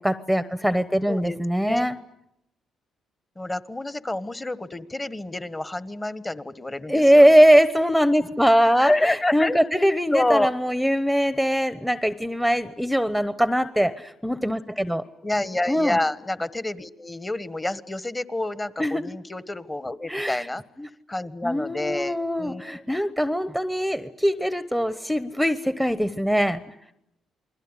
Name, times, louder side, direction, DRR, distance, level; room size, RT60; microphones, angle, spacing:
voice 1, 0.0-2.0 6.9-15.0 15.7-16.0 18.8-19.0 20.1-20.5 20.8-20.9 21.4-26.6, equal, ahead, 12 dB, 1.0 m, -21 dB
voice 2, 3.3-7.4 8.8-9.6 10.1-10.5 15.2-20.6 21.1-22.8, left 1 dB, 20° left, 14 dB, 1.3 m, -28 dB
28.5 x 21.5 x 9.8 m, 0.83 s
cardioid pair, 90°, 0 cm